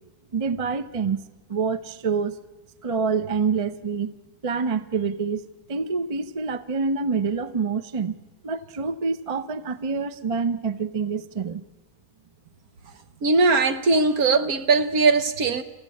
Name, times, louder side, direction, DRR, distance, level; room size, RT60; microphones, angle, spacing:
voice 1, 0.3-1.2 1.5-2.4 2.8-4.1 4.4-8.2 8.4-11.6, right 5 dB, 30° right, 0.7 m, -26 dB
voice 2, 13.2-15.6, right 3 dB, 65° right, 1.7 m, -20 dB
28.0 x 15.0 x 8.5 m
omnidirectional pair, 1.7 m